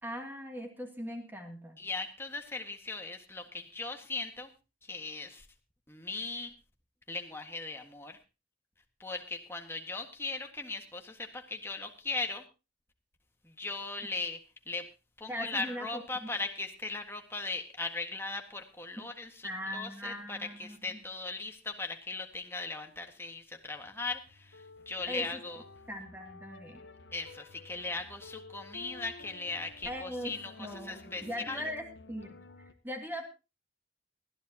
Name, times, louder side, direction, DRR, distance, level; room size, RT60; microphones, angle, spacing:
voice 1, 0.0-1.8 15.3-16.3 19.0-19.1 19.4-21.0 25.1-25.4 25.9-26.8 29.8-32.4 32.8-33.3, equal, 10° right, 3 dB, 2.6 m, -40 dB
voice 2, 1.8-4.5 4.8-5.4 5.9-6.5 7.1-8.2 9.0-12.4 13.4-14.4 14.7-14.9 15.2-25.6 27.1-31.6, left 3 dB, 15° left, 4 dB, 1.7 m, -38 dB
sound 1, 23.7-32.7, left 3 dB, 70° left, 1.1 m, -52 dB
20.0 x 13.5 x 2.9 m, 0.29 s
head